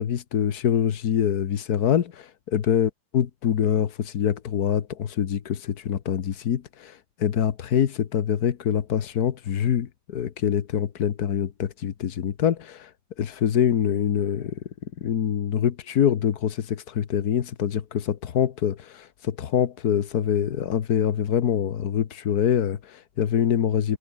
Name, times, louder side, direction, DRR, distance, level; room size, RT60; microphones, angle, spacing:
voice 1, 0.0-12.9 13.2-14.6 15.0-24.0, left 9 dB, 70° left, 1.7 m, -25 dB
omnidirectional pair, 1.7 m